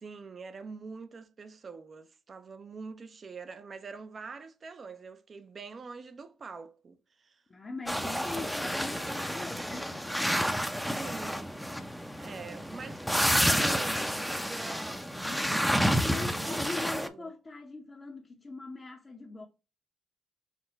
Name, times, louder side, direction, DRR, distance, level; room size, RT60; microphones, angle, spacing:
voice 1, 0.0-7.4 11.0-11.7 12.2-15.1 15.5-17.3, right 4 dB, 45° right, 0.6 m, -45 dB
voice 2, 7.5-10.3 15.2-19.5, left 3 dB, 35° left, 0.8 m, -42 dB
sound 1, 7.9-17.1, equal, ahead, 0.6 m, -30 dB
5.9 x 2.2 x 3.9 m
supercardioid pair, 60°, 0 cm